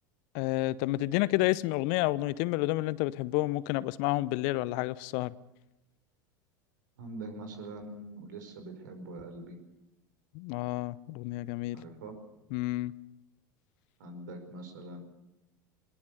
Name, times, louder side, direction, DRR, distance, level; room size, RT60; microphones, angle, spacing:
voice 1, 0.3-5.3 10.3-11.8 12.5-12.9, left 18 dB, 55° left, 19 dB, 0.8 m, -30 dB
voice 2, 7.0-9.6 11.7-12.2 14.0-15.0, right 2 dB, 70° right, 6 dB, 5.1 m, -43 dB
21.5 x 19.0 x 6.8 m, 0.95 s
figure-of-eight pair, 80°, 11 cm